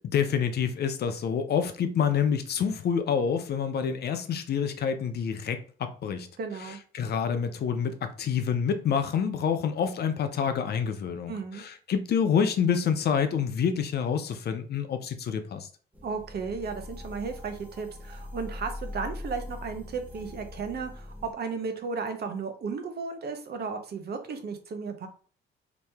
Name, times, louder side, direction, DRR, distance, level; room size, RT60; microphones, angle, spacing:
voice 1, 0.0-6.3 6.9-15.7, left 7 dB, 55° left, 0.5 m, -27 dB
voice 2, 6.4-6.8 11.3-11.6 16.0-25.1, right 5 dB, 55° right, 0.8 m, -34 dB
sound 1, 15.9-21.3, left 2 dB, 10° right, 0.9 m, -41 dB
3.0 x 2.7 x 3.4 m
cardioid pair, 90°, 20 cm